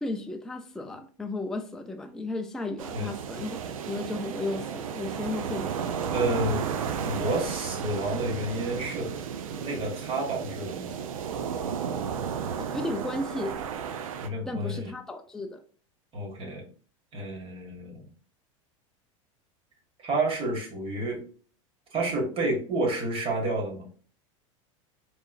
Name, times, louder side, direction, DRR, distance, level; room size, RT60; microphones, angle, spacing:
voice 1, 0.0-5.9 12.7-13.6 14.5-15.6, left 2 dB, 5° left, 0.4 m, -34 dB
sound 1, 2.8-14.3, right 7 dB, 80° right, 0.5 m, -33 dB
voice 2, 6.1-6.7 7.0-9.1 9.6-10.9 14.2-14.9 16.1-16.6 17.1-18.1 20.0-21.2 21.9-23.8, right 2 dB, 35° right, 1.9 m, -30 dB
4.5 x 3.2 x 2.4 m
hypercardioid pair, 100°, 17 cm